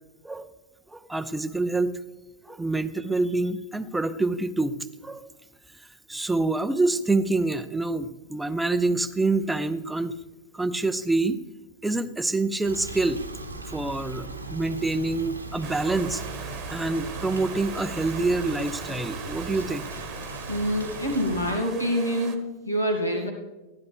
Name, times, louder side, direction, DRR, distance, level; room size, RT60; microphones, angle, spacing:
voice 1, 0.9-1.9 2.5-4.8 5.0-5.3 6.1-10.2 10.5-11.4 11.8-13.2 13.7-16.2 16.7-19.9, right 2 dB, 5° right, 11 dB, 0.6 m, -26 dB
sound 1, 12.6-21.5, right 2 dB, 85° right, 1.2 m, -38 dB
sound 2, 15.6-22.4, right 8 dB, 35° right, 1.2 m, -40 dB
voice 2, 20.5-23.3, equal, 80° left, 1 dB, 2.4 m, -26 dB
14.5 x 10.5 x 3.5 m, 1.1 s
figure-of-eight pair, 90°, 0 cm